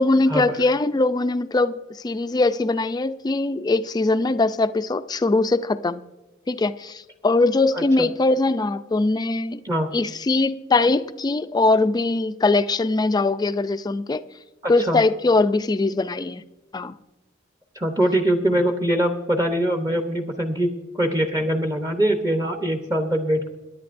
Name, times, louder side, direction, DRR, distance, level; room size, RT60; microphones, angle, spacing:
voice 1, 0.0-1.8 2.0-6.0 6.5-9.6 9.9-14.2 14.7-16.4 16.7-16.9, left 2 dB, 20° left, 0.3 m, -21 dB
voice 2, 7.7-8.1 9.6-9.9 14.6-15.0 17.8-23.5, right 1 dB, 20° right, 0.8 m, -23 dB
23.0 x 10.5 x 2.6 m
head